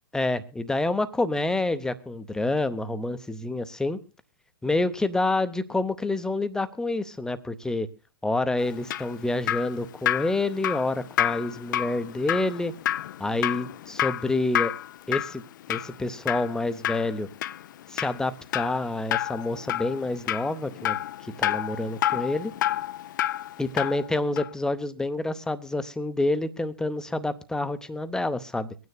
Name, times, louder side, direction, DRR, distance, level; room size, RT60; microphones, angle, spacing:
voice 1, 0.1-4.0 4.6-7.9 8.2-12.7 13.2-14.7 15.1-15.4 15.7-17.3 17.9-21.0 21.4-22.5 23.6-28.7, left 2 dB, 5° left, 11 dB, 0.7 m, -28 dB
Drip, 8.6-24.1 24.4-24.5, left 12 dB, 55° left, 0.4 m, -30 dB
24.0 x 9.5 x 2.3 m, 0.36 s
figure-of-eight pair, 105°, 12 cm